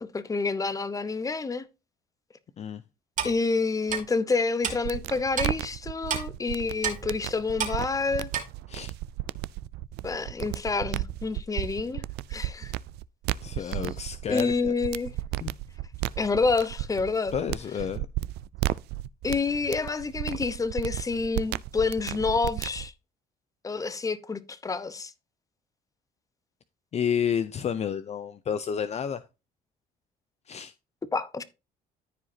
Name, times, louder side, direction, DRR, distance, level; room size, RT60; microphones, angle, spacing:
voice 1, 0.0-1.7 3.2-8.3 10.0-12.0 12.3-12.7 13.6-13.8 14.3-15.1 16.2-17.3 19.2-22.9 23.6-25.1 31.1-31.4, left 4 dB, 20° left, 0.9 m, -28 dB
Clock, 3.2-3.3 3.9-4.0 4.6-4.8 5.4-5.5 6.1-6.2 6.8-7.0 7.6-7.8 8.3-8.4, right 7 dB, 50° right, 2.4 m, -29 dB
sound 1, 4.8-22.9, right 16 dB, 80° right, 0.4 m, -34 dB
voice 2, 13.4-14.7 15.4-15.5 17.3-18.1 26.9-29.2 30.5-30.7, left 8 dB, 40° left, 0.6 m, -30 dB
14.0 x 4.9 x 2.7 m
cardioid pair, 110°, 17 cm